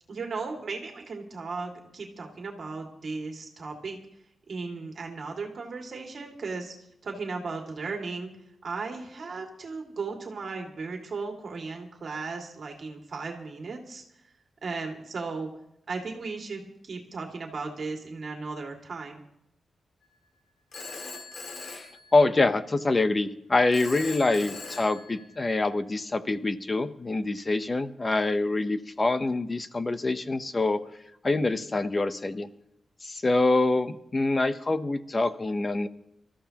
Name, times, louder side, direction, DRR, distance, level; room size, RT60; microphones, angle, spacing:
voice 1, 0.1-4.0 4.5-6.7 7.0-8.3 8.6-14.0 14.6-15.5 15.9-19.2, right 4 dB, 50° right, 1 dB, 2.3 m, -36 dB
Telephone, 20.7-22.7 23.7-25.7, left 3 dB, 55° left, 2.1 m, -41 dB
voice 2, 21.6-30.8 31.2-32.5 33.0-35.9, left 2 dB, 25° left, 11 dB, 0.8 m, -25 dB
26.5 x 14.0 x 2.9 m, 0.78 s
wide cardioid pair, 165°, 0 cm